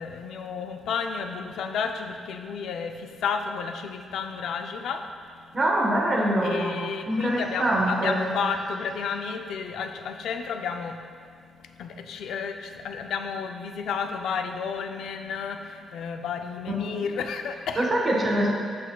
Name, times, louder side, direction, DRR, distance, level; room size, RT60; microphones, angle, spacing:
voice 1, 0.0-5.1 6.4-11.0 11.8-17.9, left 6 dB, 75° left, 6 dB, 0.4 m, -32 dB
voice 2, 5.5-8.2 16.7-16.8 17.8-18.5, right 1 dB, 25° right, -2 dB, 1.1 m, -24 dB
8.3 x 6.7 x 2.2 m, 2.2 s
cardioid pair, 145°, 0 cm